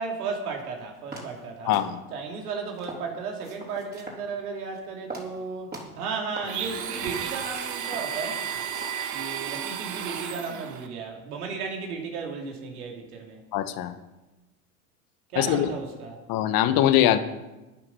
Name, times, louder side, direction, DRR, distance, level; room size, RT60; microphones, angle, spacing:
voice 1, 0.0-1.8 2.1-5.7 6.0-8.4 9.1-13.4 15.3-16.2, right 4 dB, 85° right, 1 dB, 3.1 m, -34 dB
sound 1, 0.6-0.7 1.1-1.5 1.7-2.3 2.8-3.1 3.4-4.2 4.6-4.8 5.1-5.4 5.7-6.1 6.4-6.6 7.1-7.2 7.7-8.5 8.7-9.1, right 2 dB, 20° right, 3.9 m, -41 dB
voice 2, 1.6-2.0 13.5-13.9 15.3-15.7 16.3-17.2, left 12 dB, 50° left, 11 dB, 1.2 m, -22 dB
Domestic sounds home sounds, 6.4-10.9, right 8 dB, 40° right, 1.5 m, -33 dB
12.0 x 9.8 x 5.6 m, 1.1 s
hypercardioid pair, 90°, 44 cm